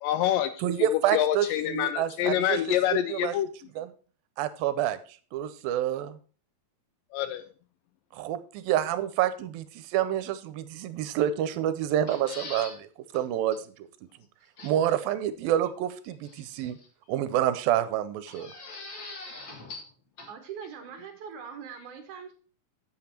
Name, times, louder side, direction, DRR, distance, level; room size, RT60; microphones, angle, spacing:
voice 1, 0.0-0.5 1.1-3.5 7.1-7.4, left 11 dB, 80° left, 11 dB, 2.2 m, -26 dB
voice 2, 0.6-2.6 3.1-3.3 3.8-3.9 4.4-5.0 5.3-6.2 8.1-12.9 13.1-13.9 14.6-16.8 17.1-18.5, right 11 dB, 85° right, 13 dB, 2.5 m, -28 dB
sound 1, 11.9-12.8 13.1-13.2 13.5-13.6 14.6-15.0 16.2-16.9 18.3-19.9 20.2-20.3, left 3 dB, 40° left, 2.0 m, -42 dB
voice 3, 20.3-22.3, right 7 dB, 65° right, 6 dB, 2.3 m, -41 dB
7.9 x 7.8 x 4.4 m, 0.39 s
omnidirectional pair, 4.2 m